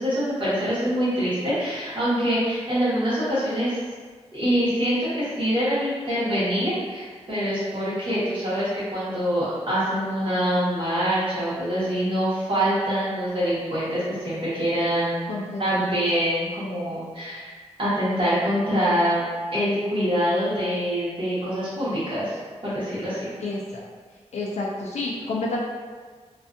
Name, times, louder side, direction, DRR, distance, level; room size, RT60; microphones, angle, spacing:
voice 1, 0.0-3.8 4.3-15.2 15.6-17.5 17.8-19.2 19.5-22.4 22.6-23.3, equal, 45° right, -11 dB, 1.1 m, -25 dB
voice 2, 15.3-15.8 23.4-23.8 24.3-25.6, left 2 dB, 75° left, -3 dB, 0.4 m, -30 dB
2.5 x 2.4 x 2.5 m, 1.6 s
wide cardioid pair, 165°, 12 cm